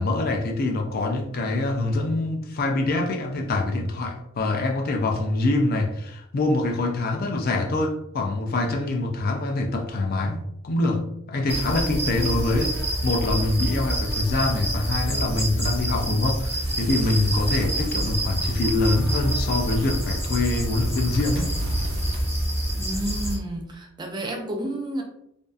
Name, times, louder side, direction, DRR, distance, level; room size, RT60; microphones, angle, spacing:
voice 1, 0.0-21.6, left 2 dB, 50° left, 0.4 m, -25 dB
sound 1, 11.5-23.4, right 1 dB, 10° left, 0.7 m, -27 dB
sound 2, 16.6-22.5, right 1 dB, 85° right, 0.4 m, -36 dB
voice 2, 22.8-25.0, right 1 dB, 20° right, 0.4 m, -31 dB
2.6 x 2.3 x 2.3 m
head